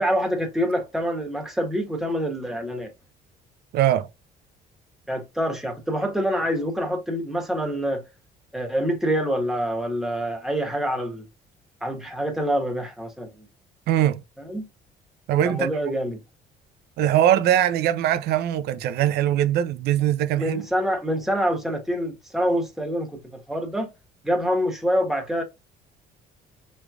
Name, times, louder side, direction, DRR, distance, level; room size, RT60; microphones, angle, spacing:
voice 1, 0.0-2.9 5.1-8.0 8.5-11.2 11.8-13.5 14.4-14.7 15.4-16.2 20.3-23.9 24.2-25.4, equal, ahead, 1.2 m, -26 dB
voice 2, 3.7-4.1 13.9-14.2 15.3-15.7 17.0-20.6, right 11 dB, 75° right, 0.5 m, -21 dB
4.9 x 3.2 x 2.3 m
cardioid pair, 110°, 17 cm